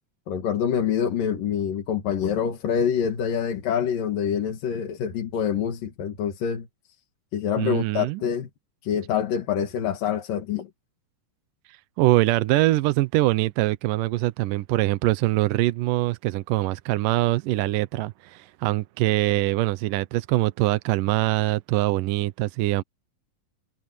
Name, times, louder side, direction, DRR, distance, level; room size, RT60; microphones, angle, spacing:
voice 1, 0.3-6.7 7.3-8.5 8.8-10.7, left 8 dB, 75° left, 3.8 m, -26 dB
voice 2, 7.6-8.2 11.7-22.8, right 18 dB, 80° right, 2.3 m, -23 dB
omnidirectional pair, 4.0 m